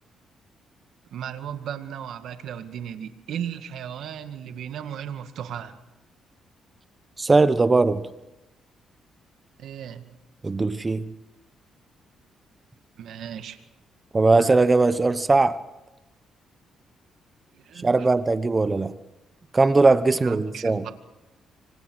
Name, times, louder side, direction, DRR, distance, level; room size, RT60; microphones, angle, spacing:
voice 1, 1.1-5.8 9.6-10.0 13.0-13.6 17.5-17.9 20.2-20.9, right 9 dB, 75° right, 8 dB, 2.0 m, -35 dB
voice 2, 7.2-8.0 10.4-11.1 14.1-15.6 17.8-19.0 19.5-20.8, right 3 dB, 25° right, 13 dB, 1.1 m, -20 dB
27.0 x 25.5 x 6.4 m, 0.99 s
cardioid pair, 90°, 0 cm